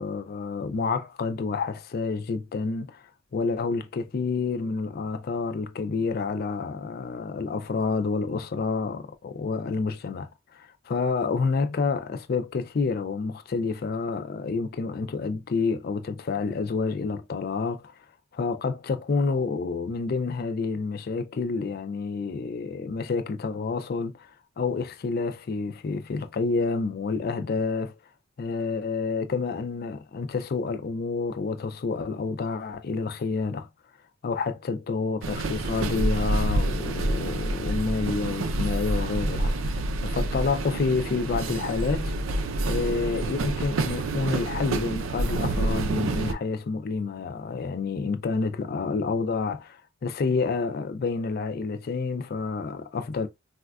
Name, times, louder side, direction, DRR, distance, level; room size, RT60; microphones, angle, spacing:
voice 1, 0.0-3.0 3.3-17.9 18.3-27.9 28.4-33.7 34.2-42.1 42.7-53.3, left 4 dB, 50° left, 0.4 m, -29 dB
sound 1, 35.2-46.3, right 2 dB, 85° right, 0.5 m, -28 dB
4.2 x 2.2 x 2.3 m
head